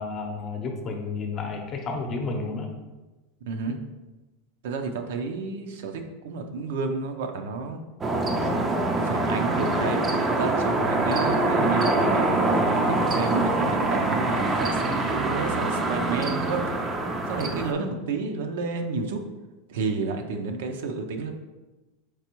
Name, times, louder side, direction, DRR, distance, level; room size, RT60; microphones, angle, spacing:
voice 1, 0.0-2.7, left 3 dB, 30° left, 3 dB, 0.7 m, -31 dB
voice 2, 3.5-3.8 4.6-7.8 9.0-10.0 10.3-16.9 17.3-19.2 19.7-21.3, right 4 dB, 75° right, 5 dB, 0.5 m, -31 dB
sound 1, 8.0-17.7, right 2 dB, 20° right, 0.4 m, -24 dB
4.6 x 3.3 x 3.0 m, 1.1 s
supercardioid pair, 145°, 0 cm